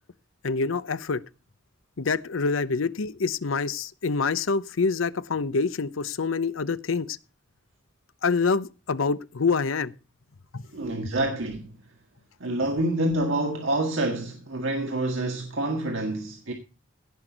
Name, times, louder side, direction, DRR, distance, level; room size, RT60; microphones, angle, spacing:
voice 1, 0.4-1.2 2.0-7.2 8.2-9.9 10.5-10.6, left 4 dB, 85° left, 0.7 m, -26 dB
voice 2, 10.7-11.8 12.4-16.5, right 1 dB, 80° right, 1.8 m, -27 dB
17.0 x 6.1 x 5.1 m
head